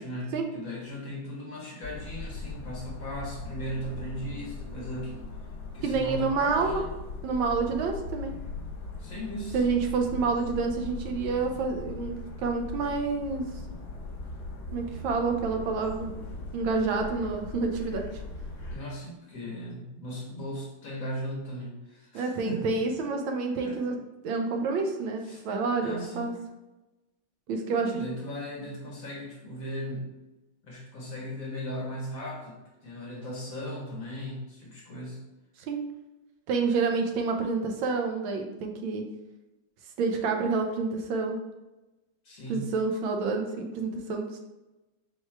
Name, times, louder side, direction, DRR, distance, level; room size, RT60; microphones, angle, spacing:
voice 1, 0.0-5.2 5.7-6.9 9.0-9.6 13.7-13.8 18.7-22.8 23.0-23.1 23.4-24.0 25.2-25.4 25.8-26.4 27.8-30.1 30.6-35.2 42.2-42.7, equal, 50° left, -3 dB, 1.2 m, -37 dB
sound 1, 1.8-18.8, left 3 dB, 75° left, 1.4 m, -39 dB
voice 2, 5.8-6.8 7.2-8.3 9.5-13.5 14.7-16.1 16.5-18.0 22.1-23.9 24.2-26.3 27.5-28.1 35.7-35.8 36.5-39.1 40.0-41.4 42.5-44.5, right 4 dB, 85° right, 3 dB, 1.4 m, -28 dB
4.6 x 2.2 x 4.4 m, 1.0 s
omnidirectional pair, 2.2 m